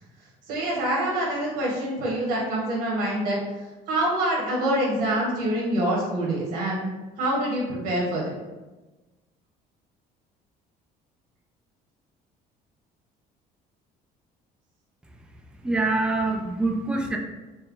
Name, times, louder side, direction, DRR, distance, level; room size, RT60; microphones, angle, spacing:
voice 1, 0.5-3.4 3.9-6.9 7.2-8.3, right 1 dB, 70° right, -4 dB, 1.5 m, -25 dB
voice 2, 15.6-17.2, right 2 dB, 5° right, 2 dB, 0.4 m, -25 dB
4.4 x 2.1 x 3.8 m, 1.2 s
cardioid pair, 160°, 16 cm